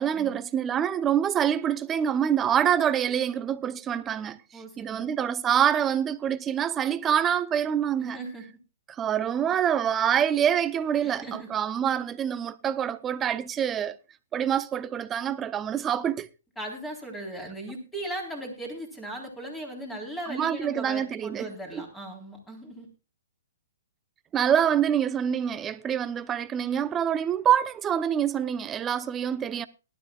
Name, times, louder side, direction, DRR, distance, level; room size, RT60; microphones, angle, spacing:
voice 1, 0.0-4.4 4.8-8.2 9.0-14.0 14.3-16.3 20.3-21.5 21.7-21.8 24.3-29.7, right 9 dB, 15° right, 0.7 m, -26 dB
voice 2, 4.5-5.1 8.0-8.4 11.0-11.5 16.6-22.9, right 1 dB, 5° left, 3.8 m, -38 dB
18.5 x 12.0 x 2.4 m
hypercardioid pair, 150°, 0 cm